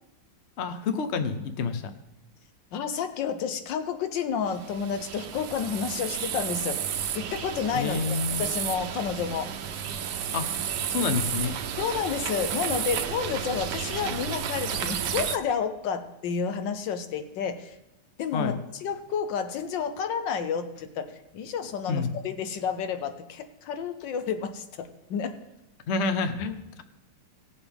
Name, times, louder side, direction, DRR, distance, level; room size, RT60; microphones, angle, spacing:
voice 1, 0.6-1.9 7.7-8.4 10.3-10.5 10.9-11.6 18.3-18.6 21.9-22.1 25.9-26.8, left 4 dB, 50° left, 10 dB, 0.9 m, -28 dB
voice 2, 2.7-6.9 7.1-9.5 11.8-17.8 18.2-25.3, left 6 dB, 85° left, 8 dB, 1.5 m, -30 dB
sound 1, 4.5-15.4, right 8 dB, 75° right, 1.3 m, -32 dB
19.0 x 7.0 x 3.5 m, 0.94 s
omnidirectional pair, 1.9 m